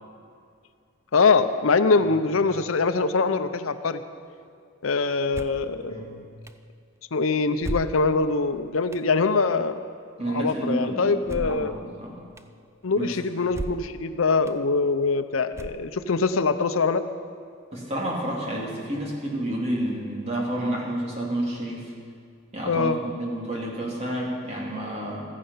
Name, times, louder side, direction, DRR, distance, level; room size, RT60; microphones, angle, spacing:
voice 1, 1.1-4.0 4.8-6.3 7.1-9.8 10.3-11.7 12.8-17.0 22.6-23.0, left 4 dB, 80° left, 10 dB, 0.7 m, -23 dB
sound 1, 5.3-5.7 6.5-6.6 7.6-8.3 8.9-9.1 11.2-11.7 12.4-12.5 13.5-14.0 14.5-14.6 15.5-16.1, right 1 dB, 15° right, 0.4 m, -35 dB
voice 2, 10.2-11.7 12.0-12.2 13.0-13.1 17.7-21.9 22.5-25.3, right 1 dB, 30° right, -2 dB, 3.1 m, -30 dB
15.0 x 14.5 x 5.7 m, 2.3 s
head